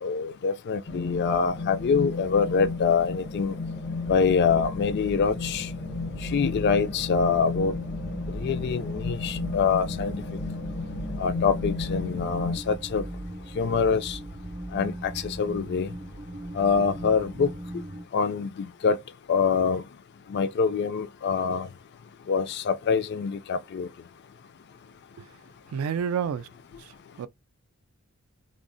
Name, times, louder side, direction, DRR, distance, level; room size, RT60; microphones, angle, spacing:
voice 1, 0.0-3.5 4.1-5.7 6.3-7.7 8.3-10.2 11.2-13.0 13.6-14.2 14.7-15.9 16.5-17.5 18.1-19.0 19.3-19.8 20.3-21.7 22.3-23.9, left 5 dB, 50° left, 0.3 m, -25 dB
sound 1, 0.9-12.6, left 3 dB, 80° left, 0.7 m, -33 dB
sound 2, 4.0-18.0, right 1 dB, 30° right, 0.6 m, -39 dB
voice 2, 25.7-26.5 26.8-27.3, right 7 dB, 70° right, 0.3 m, -30 dB
3.7 x 2.0 x 2.5 m
head